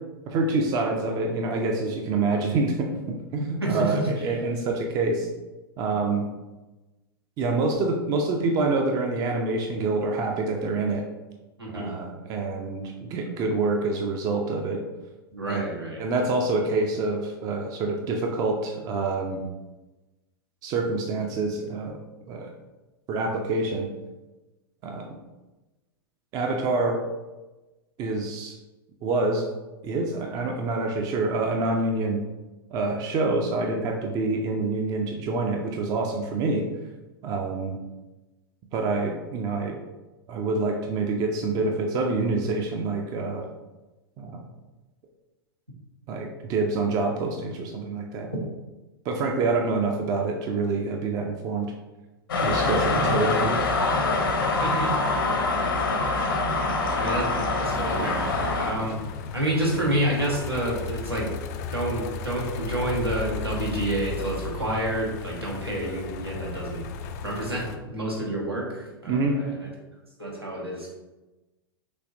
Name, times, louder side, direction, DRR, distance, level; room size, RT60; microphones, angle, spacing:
voice 1, 0.3-2.9 3.3-5.3 5.8-6.3 7.4-11.0 11.7-14.8 15.5-15.6 16.0-19.4 20.6-22.0 22.3-22.5 23.1-23.9 24.8-25.2 26.3-27.0 28.0-28.5 29.0-29.5 29.8-32.2 32.7-36.7 37.2-37.8 38.7-39.8 40.3-43.4 44.2-44.5 46.1-48.3 49.0-51.7 52.3-53.6 69.1-69.4, right 3 dB, 30° right, 2 dB, 0.5 m, -26 dB
voice 2, 3.6-4.3 11.6-11.9 15.3-16.0 54.6-54.9 56.9-58.3 58.6-59.0 59.3-61.3 61.7-66.9 67.2-69.5 70.2-70.9, right 1 dB, 85° right, -3 dB, 1.3 m, -29 dB
sound 1, 52.3-58.7, left 3 dB, 65° left, 0.8 m, -24 dB
sound 2, 57.7-67.8, left 5 dB, 40° left, 0.4 m, -35 dB
6.4 x 2.8 x 2.6 m, 1.1 s
figure-of-eight pair, 95°, 13 cm